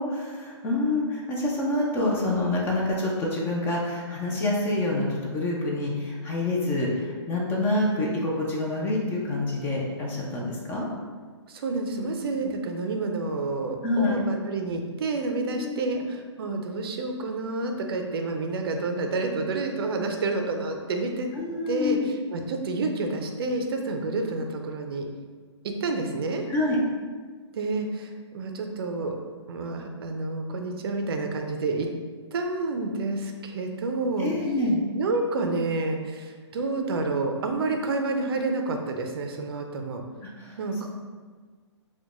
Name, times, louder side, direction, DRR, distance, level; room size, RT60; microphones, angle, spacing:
voice 1, 0.0-10.9 13.8-14.2 15.6-16.0 21.3-22.1 26.5-26.8 34.2-34.8 40.4-40.5, left 2 dB, 15° left, -3 dB, 0.4 m, -27 dB
voice 2, 11.5-21.3 21.7-25.1 25.6-26.4 27.5-29.2 29.5-31.9 32.3-34.3 35.0-40.0 40.6-40.9, right 3 dB, 55° right, 4 dB, 0.4 m, -29 dB
4.5 x 2.2 x 2.4 m, 1.5 s
hypercardioid pair, 140°, 15 cm